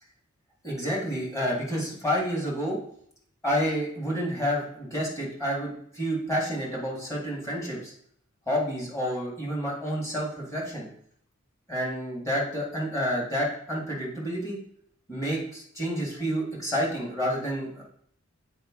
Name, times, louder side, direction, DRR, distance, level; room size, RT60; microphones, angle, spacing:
voice 1, 0.6-2.8 3.4-7.9 8.5-10.9 11.7-14.6 15.1-17.8, equal, 15° left, -4 dB, 1.7 m, -29 dB
8.0 x 4.4 x 3.7 m, 0.66 s
head